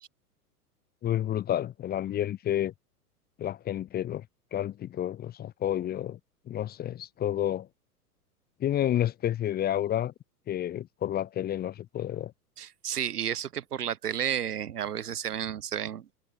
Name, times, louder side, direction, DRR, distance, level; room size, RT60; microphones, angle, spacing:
voice 1, 1.0-2.7 3.4-4.2 4.5-6.2 6.5-7.7 8.6-10.1 10.5-12.3, left 11 dB, 20° left, 0.9 m, -30 dB
voice 2, 12.6-16.1, right 9 dB, 75° right, 1.3 m, -32 dB
figure-of-eight pair, 100°, 46 cm